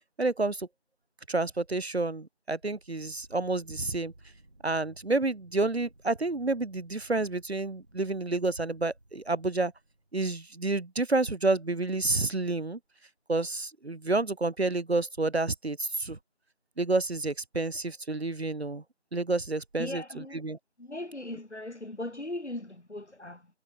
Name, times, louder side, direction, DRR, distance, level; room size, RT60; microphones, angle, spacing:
voice 1, 0.2-0.7 1.3-4.1 4.6-9.7 10.1-12.8 13.3-16.2 16.8-18.8 19.1-20.6, right 2 dB, 65° right, 1.2 m, -29 dB
sound 1, 2.6-10.4, right 1 dB, 45° right, 4.6 m, -58 dB
voice 2, 19.8-20.4 20.8-23.5, left 1 dB, 80° left, 2.8 m, -38 dB
figure-of-eight pair, 175°, 34 cm